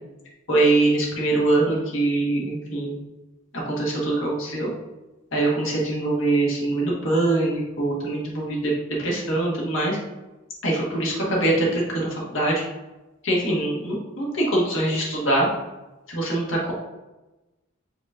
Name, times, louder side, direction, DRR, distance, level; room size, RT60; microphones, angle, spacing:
voice 1, 0.5-3.0 3.5-4.7 5.3-8.7 9.0-10.0 10.6-12.6 13.2-15.5 16.1-16.7, right 2 dB, 65° left, -4 dB, 1.4 m, -23 dB
5.1 x 3.8 x 2.5 m, 1.1 s
head